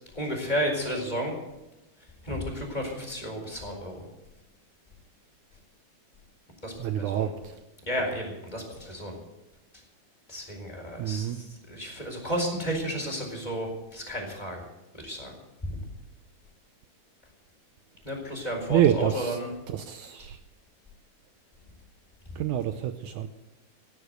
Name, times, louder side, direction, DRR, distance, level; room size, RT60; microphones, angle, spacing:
voice 1, 0.1-1.3 2.2-4.0 6.6-7.3 7.9-9.2 10.3-14.7 14.9-15.4 15.6-15.8 18.0-19.5 20.2-20.3 22.2-22.4, equal, 10° left, -1 dB, 4.2 m, -32 dB
voice 2, 6.8-7.6 11.0-11.4 18.7-19.4 19.7-20.4 22.4-23.3, right 10 dB, 85° right, 9 dB, 1.7 m, -27 dB
16.5 x 10.0 x 8.0 m, 0.99 s
omnidirectional pair, 4.3 m